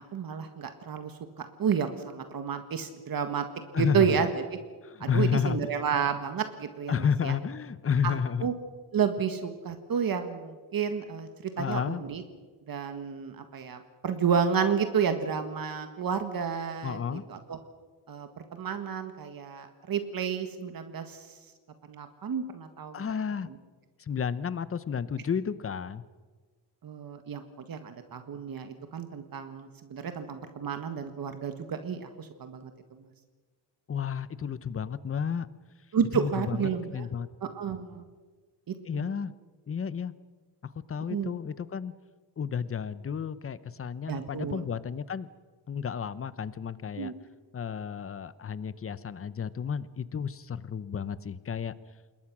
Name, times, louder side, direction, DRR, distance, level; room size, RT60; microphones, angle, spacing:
voice 1, 0.0-3.4 3.7-4.6 5.0-7.3 8.0-8.5 8.9-12.2 12.7-17.0 17.3-17.6 18.1-21.3 21.9-23.0 26.8-27.4 27.7-32.7 33.0-33.1 35.9-37.1 37.4-38.1 38.7-39.1 41.1-41.3 44.1-44.6 47.0-47.1, right 7 dB, 50° right, 8 dB, 1.7 m, -31 dB
voice 2, 3.7-4.3 4.8-5.6 6.9-8.5 11.6-12.0 16.8-17.2 22.9-23.5 24.0-26.0 33.9-35.5 36.1-37.3 38.9-39.3 39.7-40.1 40.6-41.9 42.4-45.3 45.7-47.1 47.5-51.7, left 7 dB, 30° left, 16 dB, 0.9 m, -31 dB
27.0 x 21.0 x 6.2 m, 1.4 s
wide cardioid pair, 140°, 43 cm